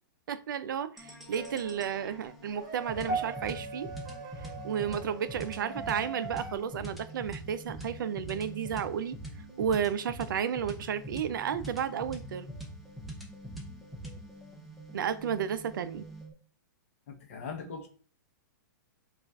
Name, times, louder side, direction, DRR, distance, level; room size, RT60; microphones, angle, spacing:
voice 1, 0.3-3.9 4.6-9.2 9.6-12.6 14.9-16.1, right 8 dB, 90° right, 0.4 m, -32 dB
sound 1, 1.0-16.3, right 1 dB, ahead, 0.5 m, -44 dB
sound 2, 1.3-1.9 2.5-6.6, right 4 dB, 65° right, 0.8 m, -44 dB
sound 3, 3.1-7.5 7.7-8.1 8.8-8.9, right 3 dB, 20° right, 1.5 m, -41 dB
voice 2, 17.1-17.9, left 5 dB, 40° left, 0.8 m, -40 dB
5.2 x 2.4 x 2.3 m
hypercardioid pair, 175°, 11 cm